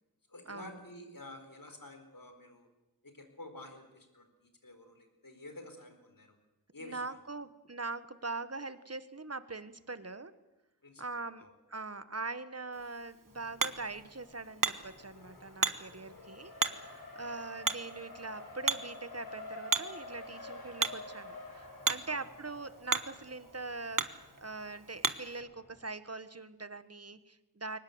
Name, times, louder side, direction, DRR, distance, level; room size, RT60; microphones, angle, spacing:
voice 1, 0.3-2.7 3.0-6.4 6.7-7.2 10.8-11.5 16.9-17.0 22.1-22.2, left 2 dB, 65° left, 6 dB, 4.4 m, -50 dB
voice 2, 6.8-10.3 11.0-27.8, right 3 dB, 40° right, 13 dB, 1.5 m, -42 dB
Hammer, 12.7-25.4, right 4 dB, 60° right, 1.3 m, -37 dB
Race car auto racing, 13.3-25.9, left 2 dB, 80° left, 5.6 m, -50 dB
23.0 x 19.5 x 8.1 m, 0.99 s
wide cardioid pair, 40°, 36 cm